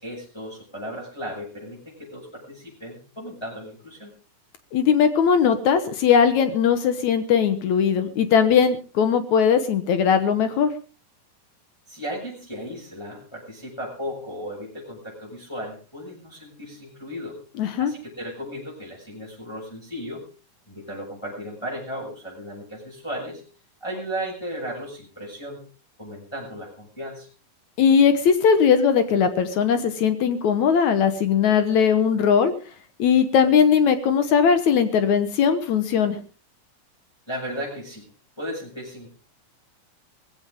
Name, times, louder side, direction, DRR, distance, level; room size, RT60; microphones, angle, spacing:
voice 1, 0.0-4.1 11.9-17.4 17.8-20.2 20.7-23.4 23.8-25.6 26.0-27.3 37.3-38.1 38.4-39.1, equal, 5° left, -3 dB, 6.8 m, -35 dB
voice 2, 4.7-10.7 17.6-17.9 27.8-32.5 33.0-36.2, left 7 dB, 65° left, 10 dB, 2.2 m, -19 dB
19.0 x 16.0 x 3.6 m, 0.37 s
omnidirectional pair, 4.1 m